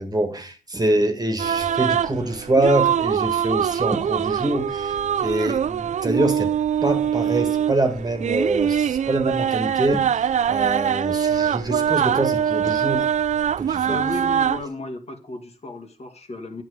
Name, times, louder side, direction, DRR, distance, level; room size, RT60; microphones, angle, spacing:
voice 1, 0.0-6.6 6.8-13.1 13.6-14.0, right 1 dB, 25° right, 1.8 m, -25 dB
sound 1, 1.4-14.6, right 8 dB, 55° right, 0.4 m, -23 dB
voice 2, 13.9-16.6, left 2 dB, 50° left, 2.0 m, -34 dB
9.3 x 7.3 x 5.0 m
cardioid pair, 75°, 14 cm